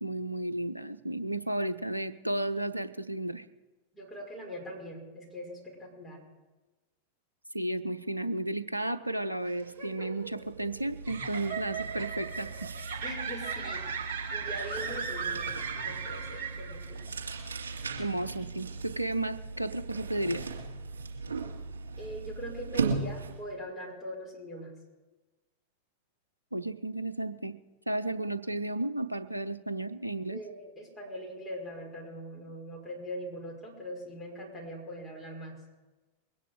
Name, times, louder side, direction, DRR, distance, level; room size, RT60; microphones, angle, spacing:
voice 1, 0.0-3.5 7.5-12.7 18.0-20.4 26.5-27.5 27.9-30.4, right 1 dB, 85° right, 13 dB, 0.6 m, -33 dB
voice 2, 3.9-6.2 13.0-14.1 14.3-15.5 15.7-17.0 22.0-24.7 30.3-35.6, equal, 10° left, -4 dB, 5.5 m, -41 dB
sound 1, 9.4-17.0, right 6 dB, 50° right, 2.5 m, -37 dB
sound 2, 9.6-9.8 10.1-23.5, right 4 dB, 70° right, 2.9 m, -38 dB
22.0 x 10.0 x 4.8 m, 1.2 s
figure-of-eight pair, 90°, 0 cm